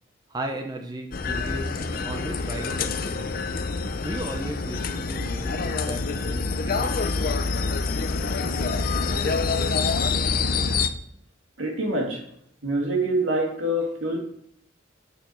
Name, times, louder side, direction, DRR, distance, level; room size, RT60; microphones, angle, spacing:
voice 1, 0.3-3.4 4.0-7.3, right 1 dB, 20° right, 3 dB, 0.7 m, -36 dB
sound 1, 1.1-10.9, left 4 dB, 45° left, 0.5 m, -26 dB
voice 2, 11.6-12.2 12.6-14.2, right 1 dB, 80° right, 0 dB, 2.2 m, -25 dB
6.7 x 6.7 x 4.4 m, 0.72 s
head